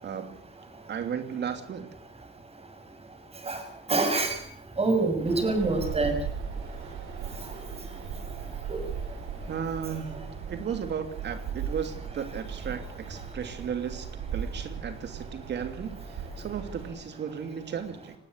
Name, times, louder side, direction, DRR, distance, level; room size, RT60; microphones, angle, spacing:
voice 1, 0.0-0.4 0.9-1.9 9.5-18.1, right 7 dB, 60° right, 9 dB, 2.8 m, -35 dB
voice 2, 3.9-4.4 4.8-6.1 8.7-8.8, right 3 dB, 30° right, 7 dB, 6.7 m, -25 dB
Wind, 5.2-16.9, right 6 dB, 85° right, 5.0 m, -38 dB
19.5 x 17.5 x 8.2 m, 0.62 s
cardioid pair, 90°, 20 cm